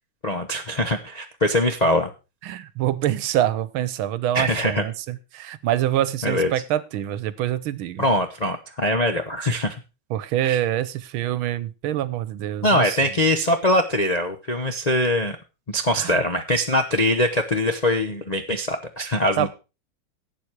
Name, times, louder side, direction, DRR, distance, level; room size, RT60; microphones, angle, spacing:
voice 1, 0.2-2.1 4.3-4.8 6.2-6.5 8.0-9.8 10.4-10.6 12.6-15.4 15.7-19.5, left 1 dB, 45° left, 4 dB, 0.5 m, -22 dB
voice 2, 2.4-8.0 10.1-13.1 15.9-16.2 19.4-19.5, right 12 dB, 80° right, 17 dB, 1.6 m, -25 dB
12.0 x 8.4 x 4.7 m, 0.30 s
omnidirectional pair, 2.3 m